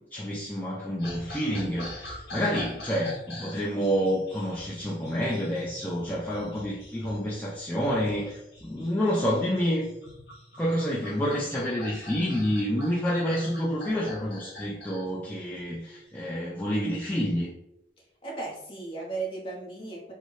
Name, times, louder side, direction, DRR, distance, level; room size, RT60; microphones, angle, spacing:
voice 1, 0.1-9.9 10.6-17.5, equal, 10° left, -6 dB, 0.4 m, -28 dB
sound 1, 1.0-16.1, left 1 dB, 60° left, 0.9 m, -44 dB
voice 2, 18.2-20.1, right 3 dB, 30° left, -2 dB, 0.8 m, -35 dB
4.0 x 2.0 x 3.1 m, 0.85 s
head